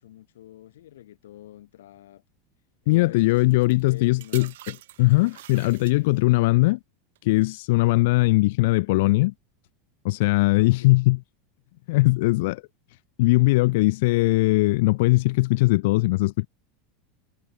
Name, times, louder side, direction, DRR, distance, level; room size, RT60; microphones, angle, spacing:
voice 1, 0.0-2.2 2.8-4.5 10.6-11.0, left 13 dB, 90° left, 3.7 m, -46 dB
voice 2, 2.9-6.8 7.2-9.3 10.0-11.2 11.9-12.6 13.2-16.5, left 21 dB, 70° left, 0.5 m, -20 dB
sound 1, 3.3-6.4 7.2-7.4, right 15 dB, 80° right, 4.8 m, -46 dB
supercardioid pair, 125°, 0 cm